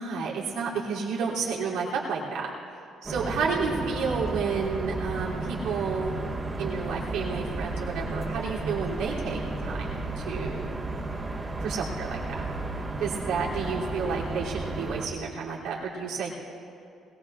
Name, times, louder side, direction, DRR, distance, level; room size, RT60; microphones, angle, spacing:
voice 1, 0.0-2.5 3.0-6.2 6.6-10.8 11.6-12.2 13.0-16.3, right 5 dB, 90° right, -5 dB, 3.0 m, -31 dB
sound 1, 3.0-15.1, right 2 dB, 20° right, 1.6 m, -33 dB
21.0 x 18.5 x 2.5 m, 2.6 s
cardioid pair, 120°, 0 cm